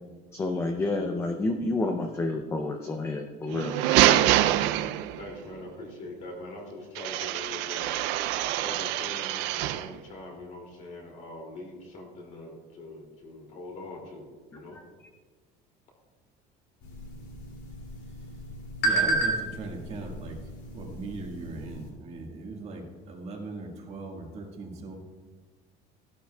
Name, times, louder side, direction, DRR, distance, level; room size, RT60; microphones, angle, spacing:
voice 1, 0.3-3.7 14.5-14.8, left 2 dB, 15° left, 4 dB, 0.5 m, -29 dB
sound 1, 3.5-5.4 7.0-9.9, right 13 dB, 70° right, 0.5 m, -25 dB
voice 2, 5.2-7.9 8.6-14.8, left 2 dB, 40° left, 1 dB, 2.5 m, -43 dB
sound 2, 16.8-21.9, right 2 dB, 60° left, 2.6 m, -32 dB
voice 3, 18.8-20.4 20.7-25.0, right 3 dB, 35° right, 1 dB, 1.6 m, -39 dB
15.5 x 11.5 x 2.3 m, 1.4 s
cardioid pair, 180°, 19 cm